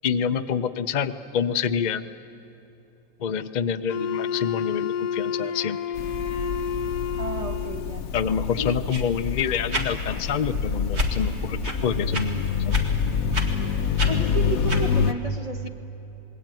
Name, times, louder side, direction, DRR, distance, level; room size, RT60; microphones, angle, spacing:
voice 1, 0.0-2.0 3.2-5.8 8.1-12.8, left 7 dB, 45° left, 9 dB, 0.6 m, -27 dB
Wind instrument woodwind instrument, 3.9-8.0, left 7 dB, 85° left, 1.3 m, -29 dB
sound 1, 6.0-15.1, left 6 dB, 70° left, 1.2 m, -27 dB
voice 2, 7.2-8.1 8.6-8.7 14.1-15.7, right 3 dB, 25° right, 6 dB, 1.3 m, -32 dB
sound 2, 8.9-9.1 9.7-9.9 10.9-11.1 11.6-11.8 12.1-12.2 12.7-12.9 13.3-13.5 14.0-14.1 14.7-14.8, equal, 45° right, 2.4 m, -27 dB
27.0 x 21.0 x 9.1 m, 2.9 s
omnidirectional pair, 1.6 m